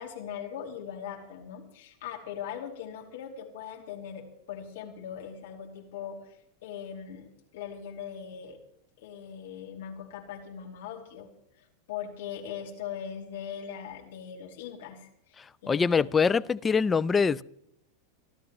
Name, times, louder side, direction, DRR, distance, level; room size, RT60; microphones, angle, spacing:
voice 1, 0.0-8.6 9.0-11.3 11.6-15.4 15.6-16.1, left 8 dB, 55° left, 2.8 m, -40 dB
voice 2, 15.7-17.4, left 5 dB, 15° left, 0.4 m, -24 dB
28.5 x 11.5 x 3.1 m
figure-of-eight pair, 90°, 0 cm